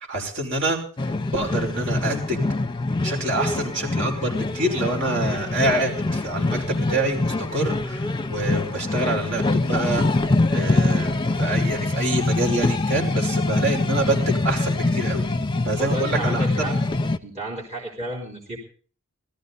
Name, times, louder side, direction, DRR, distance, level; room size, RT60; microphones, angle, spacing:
voice 1, 0.1-0.8 1.3-2.4 3.0-6.6 6.9-15.3 15.6-16.5, right 2 dB, 60° right, 1 dB, 5.6 m, -26 dB
sound 1, 1.0-17.2, left 2 dB, 20° left, 0.9 m, -24 dB
voice 2, 15.8-16.8 17.2-18.6, right 1 dB, 30° right, -3 dB, 4.1 m, -32 dB
18.5 x 14.5 x 4.1 m, 0.41 s
head